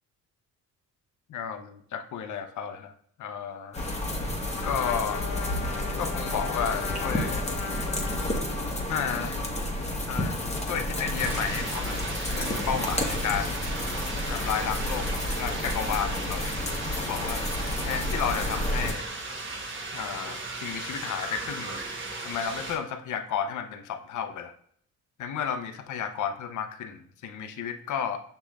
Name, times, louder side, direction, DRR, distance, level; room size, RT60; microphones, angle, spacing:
voice 1, 1.3-2.9 3.2-3.8 4.6-5.2 6.0-7.5 8.9-9.4 10.1-10.4 10.7-13.6 14.3-16.5 16.9-17.5 17.9-19.1 19.9-21.8 22.2-24.5 25.2-28.2, left 8 dB, 55° left, 8 dB, 0.6 m, -32 dB
sound 1, 3.7-18.9, left 1 dB, 20° left, 0.9 m, -30 dB
Trumpet, 4.5-9.1, left 4 dB, 80° left, 0.9 m, -38 dB
sound 2, 11.2-22.8, right 3 dB, 35° right, 1.0 m, -36 dB
6.4 x 3.0 x 2.3 m, 0.62 s
supercardioid pair, 65°, 35 cm